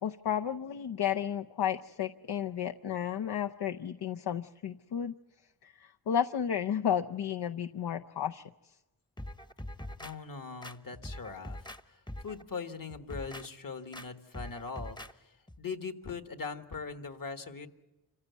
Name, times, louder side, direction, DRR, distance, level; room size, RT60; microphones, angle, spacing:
voice 1, 0.0-5.1 5.6-8.4, left 9 dB, 70° left, 7 dB, 0.7 m, -32 dB
sound 1, 9.2-10.1 10.6-11.8 12.1-12.4 12.9-13.5 13.9-14.1 14.3-15.1 15.5-15.6, left 1 dB, 10° left, 0.9 m, -43 dB
voice 2, 10.0-11.6 11.9-15.3 15.6-17.7, left 5 dB, 50° left, 8 dB, 1.7 m, -41 dB
26.5 x 15.5 x 8.2 m, 1.1 s
cardioid pair, 55°, 41 cm